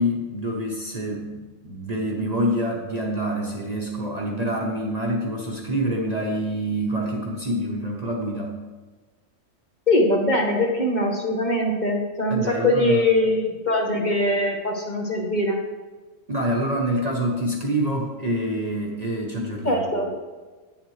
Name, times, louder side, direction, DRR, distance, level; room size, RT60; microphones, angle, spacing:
voice 1, 0.0-8.5 12.3-13.0 16.3-19.8, right 1 dB, 35° right, -1 dB, 0.8 m, -26 dB
voice 2, 9.9-15.6 19.6-20.1, left 1 dB, 40° left, 0 dB, 0.9 m, -22 dB
9.0 x 7.2 x 3.2 m, 1.3 s
omnidirectional pair, 1.4 m